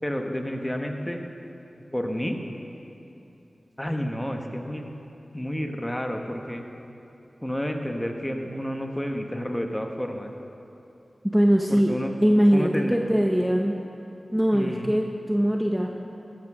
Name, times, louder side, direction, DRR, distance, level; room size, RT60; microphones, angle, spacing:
voice 1, 0.0-1.2 1.9-2.4 3.8-4.9 5.3-6.6 7.4-10.3 11.7-12.1 12.5-13.0 14.5-15.0, equal, 10° left, 4 dB, 1.1 m, -30 dB
voice 2, 11.3-13.8 14.3-15.9, equal, 10° right, 2 dB, 0.7 m, -21 dB
14.0 x 6.1 x 6.0 m, 2.9 s
cardioid pair, 45°, 0 cm